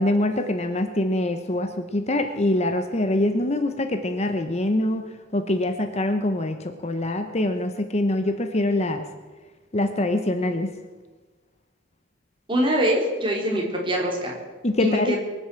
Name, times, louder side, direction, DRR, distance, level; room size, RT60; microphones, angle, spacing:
voice 1, 0.0-5.0 5.3-9.0 9.7-10.7 14.6-15.2, left 1 dB, 35° left, 8 dB, 0.9 m, -24 dB
voice 2, 12.5-14.3 14.8-15.2, equal, 25° right, -1 dB, 3.8 m, -23 dB
23.0 x 8.0 x 7.6 m, 1.3 s
head